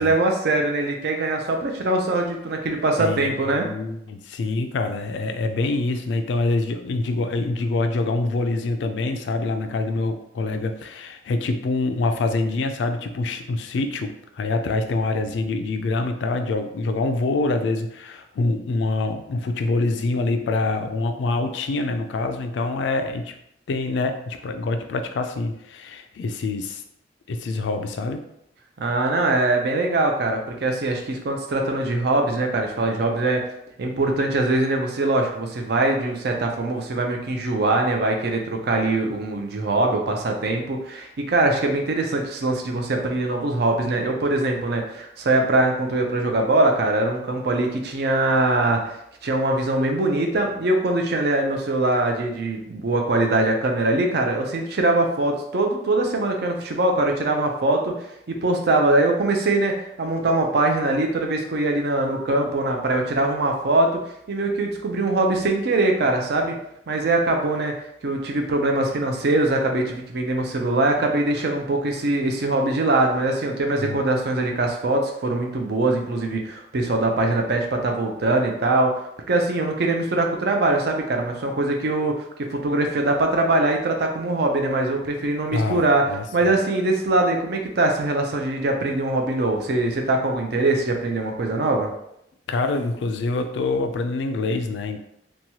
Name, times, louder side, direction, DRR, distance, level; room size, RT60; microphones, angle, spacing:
voice 1, 0.0-3.7 28.8-33.4 33.8-49.0 49.2-57.9 58.3-64.0 64.3-66.5 66.9-67.7 68.0-79.0 79.3-82.2 82.5-86.0 86.3-91.9, right 2 dB, 65° right, 3 dB, 0.5 m, -22 dB
voice 2, 3.0-23.4 23.7-26.8 27.3-28.2 73.8-74.0 85.5-86.2 92.5-95.0, left 3 dB, 85° left, 6 dB, 0.3 m, -25 dB
3.0 x 2.2 x 2.8 m, 0.77 s
head